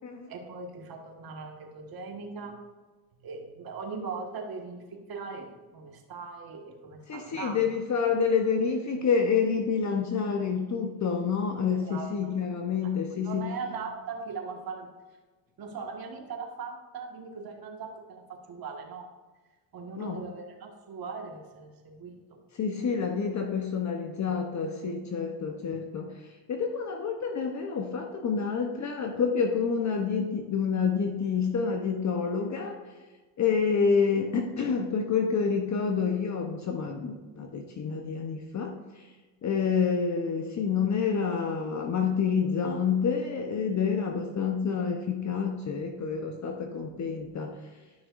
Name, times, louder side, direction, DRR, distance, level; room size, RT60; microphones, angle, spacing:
voice 1, 0.3-2.6 3.2-7.7 11.8-12.1 12.8-12.9 13.2-14.9 15.6-19.1 19.7-22.4, right 4 dB, 50° right, 2 dB, 1.7 m, -39 dB
voice 2, 7.1-13.5 20.0-20.2 22.5-26.1 26.5-32.8 33.4-39.1 39.4-47.5, left 6 dB, 40° left, 3 dB, 0.9 m, -28 dB
12.5 x 6.1 x 2.6 m, 1.3 s
cardioid pair, 110°, 44 cm